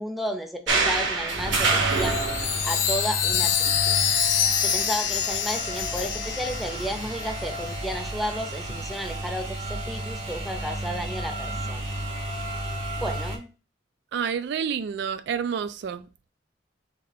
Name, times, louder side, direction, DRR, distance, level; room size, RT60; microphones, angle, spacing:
voice 1, 0.0-2.2 2.6-4.0 4.6-11.8 12.3-12.4 13.0-13.5, equal, ahead, 0.6 m, -33 dB
sound 1, 0.7-13.4, right 2 dB, 85° right, 1.2 m, -30 dB
Chime, 1.9-7.4, left 8 dB, 85° left, 0.7 m, -26 dB
voice 2, 14.1-16.0, right 7 dB, 65° right, 0.3 m, -29 dB
4.1 x 2.9 x 4.1 m
head